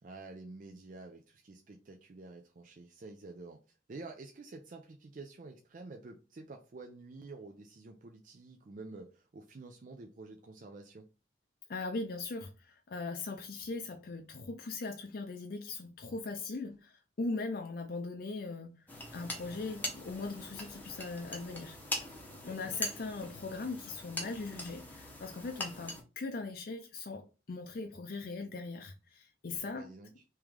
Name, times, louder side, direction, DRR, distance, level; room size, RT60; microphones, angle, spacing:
voice 1, 0.0-11.1 22.3-22.9 29.5-30.1, right 3 dB, 45° right, 0.4 m, -49 dB
voice 2, 11.7-18.7 19.1-21.8 22.4-29.9, left 3 dB, 55° left, 0.5 m, -40 dB
sound 1, 18.9-26.0, left 1 dB, 10° left, 0.8 m, -42 dB
3.2 x 3.0 x 3.6 m
head